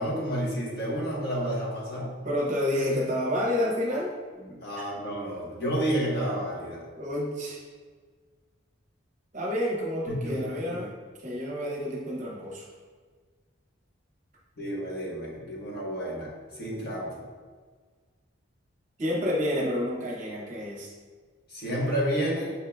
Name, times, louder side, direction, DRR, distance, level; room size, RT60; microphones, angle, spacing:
voice 1, 0.0-2.2 4.4-6.8 10.2-10.8 14.6-17.1 21.5-22.5, equal, 50° left, -5 dB, 1.1 m, -30 dB
voice 2, 2.2-4.1 4.8-4.9 7.0-7.6 9.3-10.9 11.2-12.6 19.0-20.9, left 1 dB, 35° right, -2 dB, 0.7 m, -29 dB
5.6 x 3.6 x 2.2 m, 1.5 s
head